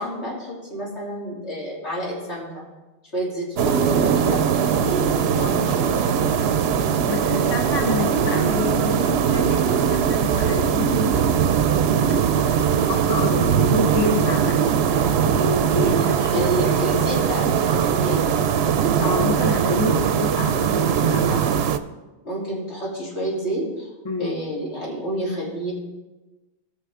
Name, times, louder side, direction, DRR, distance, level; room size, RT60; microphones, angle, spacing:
voice 1, 0.0-2.6 3.1-6.6 16.3-18.5 21.3-21.5 22.2-23.9 24.2-25.7, right 1 dB, 85° left, -6 dB, 3.5 m, -29 dB
sound 1, 3.6-21.8, right 7 dB, 70° right, 0.8 m, -20 dB
voice 2, 7.1-9.6 9.9-11.8 12.1-12.2 12.8-14.6 14.9-16.8 19.0-21.4 24.0-24.4, left 3 dB, 25° left, 3 dB, 1.0 m, -28 dB
18.5 x 6.4 x 3.6 m, 1.1 s
omnidirectional pair, 1.1 m